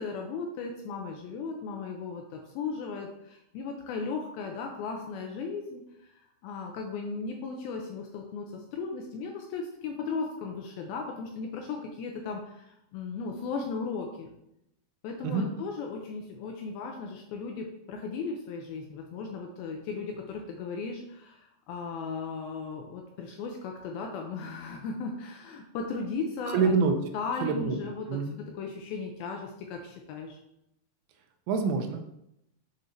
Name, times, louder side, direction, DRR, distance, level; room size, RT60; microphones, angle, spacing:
voice 1, 0.0-14.3 15.0-26.7 27.1-30.4, left 4 dB, 85° left, 2 dB, 2.1 m, -36 dB
voice 2, 26.5-26.9 27.4-27.8 28.1-28.4 31.5-32.0, right 5 dB, 80° right, 5 dB, 2.4 m, -26 dB
7.1 x 5.3 x 2.6 m, 0.81 s
omnidirectional pair, 4.8 m